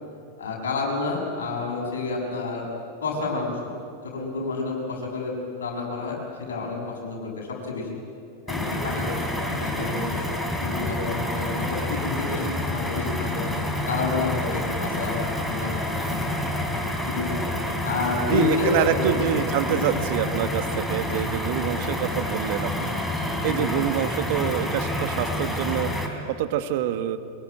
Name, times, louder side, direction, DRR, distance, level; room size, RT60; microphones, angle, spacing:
voice 1, 0.4-2.7 3.0-3.7 4.0-6.2 6.5-7.9 8.5-9.3 9.6-10.3 10.6-13.6 13.9-15.2 15.5-16.4 17.0-17.4 17.8-19.3 19.7-19.8 23.4-23.7, left 4 dB, 65° left, -1 dB, 6.9 m, -29 dB
sound 1, 8.5-26.1, left 1 dB, 5° left, 3.4 m, -28 dB
voice 2, 18.3-27.2, right 10 dB, 50° right, 11 dB, 1.3 m, -26 dB
23.5 x 22.0 x 9.2 m, 2.5 s
figure-of-eight pair, 90°, 0 cm